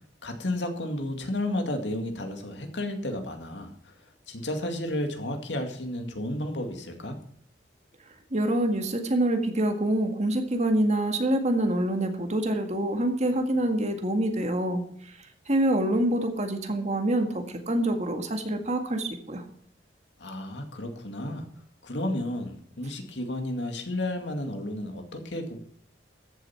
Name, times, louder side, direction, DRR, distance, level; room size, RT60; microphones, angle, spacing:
voice 1, 0.2-3.9 4.3-7.2 20.2-21.5 21.8-25.6, left 1 dB, 80° left, 5 dB, 2.2 m, -32 dB
voice 2, 8.3-14.8 15.5-19.4, right 1 dB, 40° right, 5 dB, 1.8 m, -26 dB
14.0 x 7.9 x 5.8 m, 0.64 s
head